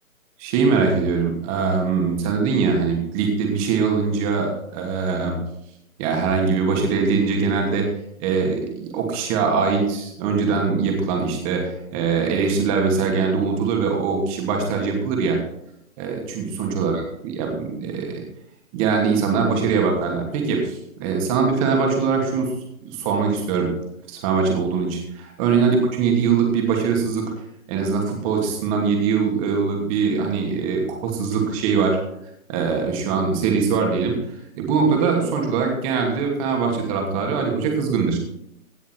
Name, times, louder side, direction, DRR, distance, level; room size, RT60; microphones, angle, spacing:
voice 1, 0.4-5.4 6.0-7.9 8.2-15.4 16.0-18.2 18.7-22.5 22.8-23.7 24.1-27.3 27.7-32.0 32.5-34.2 34.5-38.2, right 5 dB, 25° right, 1 dB, 2.7 m, -22 dB
17.0 x 6.7 x 4.7 m, 0.81 s
hypercardioid pair, 145°, 42 cm